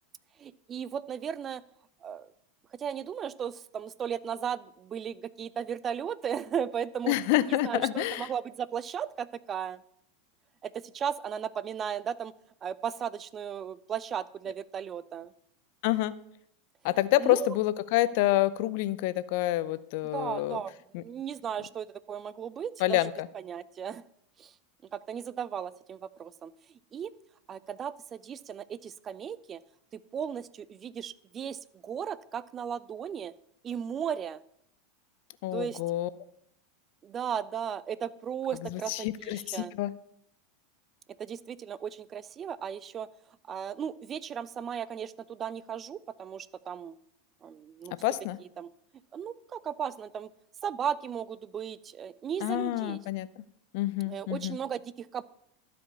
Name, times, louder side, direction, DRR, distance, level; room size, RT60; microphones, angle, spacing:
voice 1, 0.4-1.6 2.0-2.3 2.7-7.1 7.4-9.8 10.6-12.3 12.6-15.3 17.2-17.6 20.1-20.7 21.0-24.0 24.4-24.5 24.9-26.5 26.9-27.1 27.5-29.6 29.9-33.3 33.6-34.4 35.5-35.8 37.0-39.7 41.2-43.1 43.5-46.9 47.4-47.9 48.6-48.7 49.1-50.3 50.6-53.0 54.1-55.2, right 8 dB, 30° right, 18 dB, 0.5 m, -36 dB
voice 2, 7.1-8.3 15.8-16.1 16.8-20.6 20.9-21.0 22.8-23.3 35.4-36.1 38.7-39.9 48.0-48.4 52.4-53.3 53.7-54.6, left 15 dB, 60° left, 16 dB, 0.6 m, -28 dB
12.0 x 5.2 x 7.0 m, 0.72 s
hypercardioid pair, 95°, 0 cm